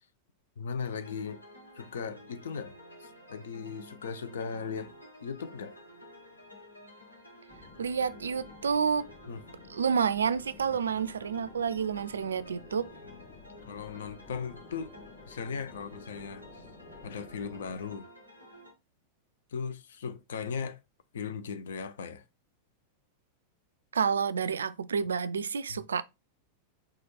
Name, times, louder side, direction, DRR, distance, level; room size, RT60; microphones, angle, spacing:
voice 1, 0.6-1.4 1.7-2.7 3.0-5.8 9.3-9.4 11.0-11.1 13.0-13.2 13.6-14.9 15.3-16.6 17.0-18.1 19.5-20.8 21.1-22.2 25.7-25.8, left 6 dB, 65° left, 0.5 m, -38 dB
sound 1, 0.8-18.7, left 1 dB, 85° left, 1.2 m, -52 dB
sound 2, 7.5-18.0, left 3 dB, 15° left, 1.7 m, -53 dB
voice 2, 7.8-9.1 9.7-12.9 23.9-26.0, right 6 dB, 70° right, 0.3 m, -29 dB
4.2 x 2.4 x 4.4 m
figure-of-eight pair, 90°, 0 cm